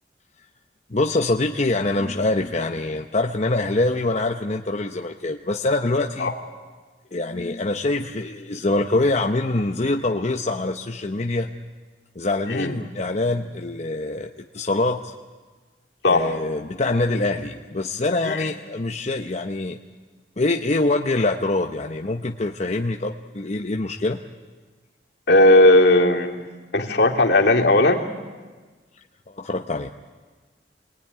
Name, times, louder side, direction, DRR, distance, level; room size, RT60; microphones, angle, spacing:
voice 1, 0.9-6.3 7.1-11.5 12.2-15.1 16.1-19.8 20.4-24.2 29.3-29.9, left 2 dB, 40° left, 3 dB, 0.9 m, -24 dB
voice 2, 25.3-26.4 26.7-28.0, left 1 dB, 70° left, 0 dB, 2.8 m, -16 dB
27.0 x 20.5 x 9.8 m, 1.4 s
head